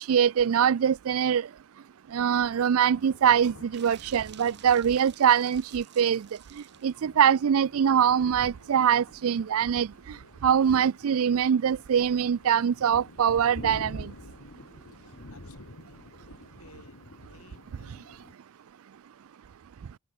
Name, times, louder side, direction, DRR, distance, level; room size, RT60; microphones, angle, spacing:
voice 1, 0.0-1.5 2.1-6.3 6.8-9.9 10.4-14.1, right 8 dB, 75° right, 0.4 m, -23 dB
sound 1, 2.8-18.3, left 1 dB, 65° left, 1.9 m, -49 dB
sound 2, 3.7-7.0, right 11 dB, 50° right, 3.0 m, -52 dB
voice 2, 14.9-16.3 16.6-18.2, left 3 dB, 85° left, 7.3 m, -59 dB
head